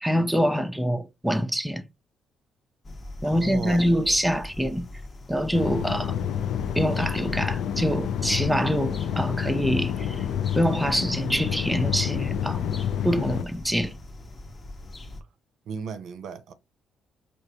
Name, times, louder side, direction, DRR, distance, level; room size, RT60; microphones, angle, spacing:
voice 1, 0.0-1.8 3.2-4.9 5.3-6.1 6.8-10.3 10.6-13.9, equal, 5° right, 0.5 m, -25 dB
sound 1, 2.8-15.2, left 1 dB, 35° left, 0.8 m, -42 dB
voice 2, 3.2-3.8 5.9-6.0 15.7-16.5, right 6 dB, 70° right, 0.6 m, -35 dB
sound 2, 5.5-13.4, left 9 dB, 75° left, 0.4 m, -28 dB
5.0 x 2.4 x 2.8 m
cardioid pair, 90°, 0 cm